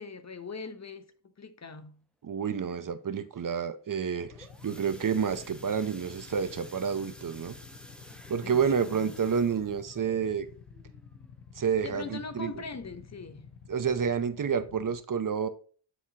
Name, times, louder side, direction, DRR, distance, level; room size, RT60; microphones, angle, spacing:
voice 1, 0.0-2.0 8.4-9.2 11.8-13.6, left 4 dB, 35° left, 0.7 m, -42 dB
voice 2, 2.2-7.5 8.3-10.5 11.6-12.5 13.7-15.5, right 7 dB, 45° right, 0.7 m, -29 dB
sound 1, 4.0-12.7 13.1-13.4 13.7-13.8 14.2-14.3, equal, ahead, 1.2 m, -52 dB
Motorcycle / Idling, 4.2-14.9, left 6 dB, 85° left, 0.9 m, -51 dB
9.8 x 4.0 x 2.9 m
cardioid pair, 50°, 44 cm